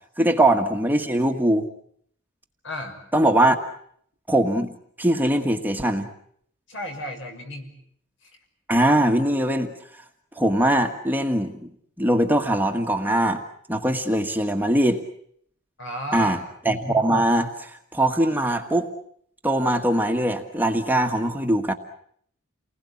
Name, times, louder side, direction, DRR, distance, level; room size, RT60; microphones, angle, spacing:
voice 1, 0.2-1.6 3.1-3.6 4.3-4.7 5.0-6.1 8.7-9.7 10.4-11.7 12.0-13.4 13.7-15.0 16.1-16.4 16.6-18.9 19.4-21.7, right 1 dB, 10° right, 4 dB, 1.6 m, -21 dB
voice 2, 2.6-3.0 6.7-7.7 15.8-16.4, equal, 60° left, 4 dB, 6.3 m, -33 dB
29.5 x 20.5 x 8.5 m, 0.66 s
head